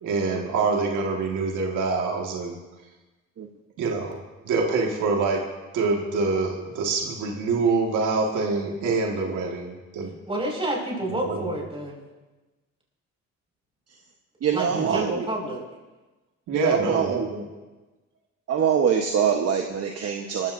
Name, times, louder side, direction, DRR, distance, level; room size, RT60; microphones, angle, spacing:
voice 1, 0.0-2.5 3.8-5.4 5.7-10.1 11.1-11.5 14.7-14.9 16.5-17.4, right 4 dB, 85° right, 0 dB, 2.0 m, -25 dB
voice 2, 10.3-12.0 14.5-15.6, right 1 dB, 20° right, -1 dB, 5.5 m, -29 dB
voice 3, 14.4-15.3 16.5-17.3 18.5-20.5, right 7 dB, 55° right, 3 dB, 1.2 m, -24 dB
23.0 x 14.5 x 2.7 m, 1.2 s
cardioid pair, 90°, 30 cm